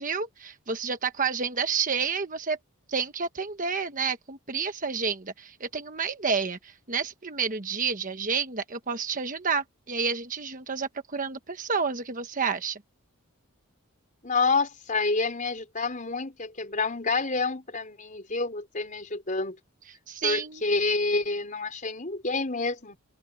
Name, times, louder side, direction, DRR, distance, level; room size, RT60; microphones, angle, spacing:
voice 1, 0.0-2.6 2.9-12.8 20.1-20.6, right 5 dB, 35° right, 1.2 m, -30 dB
voice 2, 14.2-19.6 20.2-23.0, left 3 dB, 35° left, 5.0 m, -28 dB
open air
head